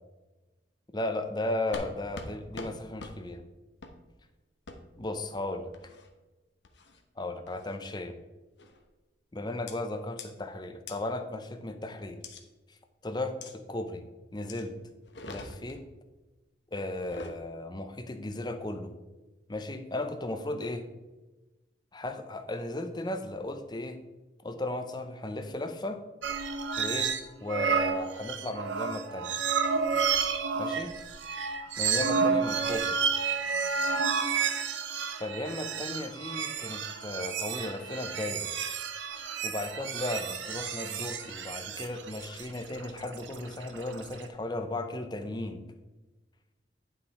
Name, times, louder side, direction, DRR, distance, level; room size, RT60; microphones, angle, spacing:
voice 1, 0.9-3.4 5.0-5.7 7.2-8.2 9.3-12.2 12.7-12.8 13.0-14.0 14.3-14.7 15.3-15.8 16.7-18.9 19.5-20.8 21.9-24.0 24.4-26.0 26.8-27.1 27.4-29.4 30.5-30.9 31.8-33.0 35.2-38.5 39.4-45.6, left 2 dB, 20° left, 7 dB, 0.6 m, -35 dB
sound 1, 1.7-1.9 2.2-2.3 2.6-2.7 3.0-3.1 3.8-4.0 4.7-4.8 5.7-6.1 6.6-7.0 7.5-7.8 8.6-8.9 9.7-9.8 10.2-10.3 10.9-11.0 12.2-12.4 13.4-13.5 14.5-14.6 15.1-15.8 16.9-17.4, left 3 dB, 65° left, 1.0 m, -43 dB
sound 2, 26.2-27.2 27.5-44.2, right 6 dB, 80° right, 0.8 m, -31 dB
9.8 x 5.8 x 4.1 m, 1.2 s
head